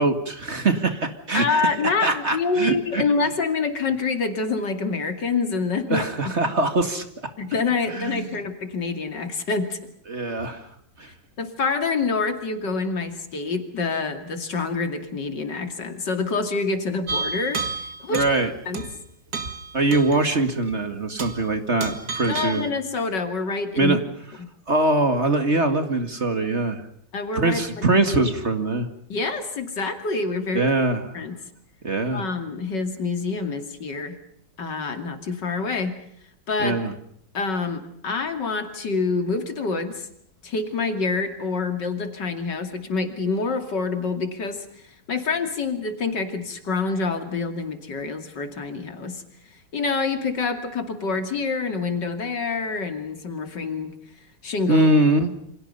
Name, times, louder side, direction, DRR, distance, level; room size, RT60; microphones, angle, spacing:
voice 1, 0.0-1.6 2.0-3.0 5.9-7.0 7.9-8.4 10.1-10.6 11.0-11.1 18.1-18.5 19.7-22.6 23.8-24.0 24.7-26.8 27.4-28.9 30.5-31.0 31.8-32.3 36.6-36.9 54.7-55.3, right 2 dB, 35° right, 8 dB, 2.3 m, -22 dB
voice 2, 1.3-6.3 7.4-9.8 11.4-18.3 18.7-18.9 22.3-24.0 24.4-24.5 27.1-28.1 29.1-30.7 31.1-31.4 32.1-34.2 34.6-35.9 36.5-36.8 37.3-40.1 40.4-49.2 49.7-53.9 54.4-54.9, left 4 dB, 70° left, 7 dB, 3.2 m, -27 dB
sound 1, 17.1-18.4 18.7-19.0 19.3-20.4 20.7-20.8 21.2-21.5 21.8-22.7, right 4 dB, 55° right, 2.8 m, -31 dB
29.0 x 26.0 x 5.5 m, 0.66 s
omnidirectional pair, 2.0 m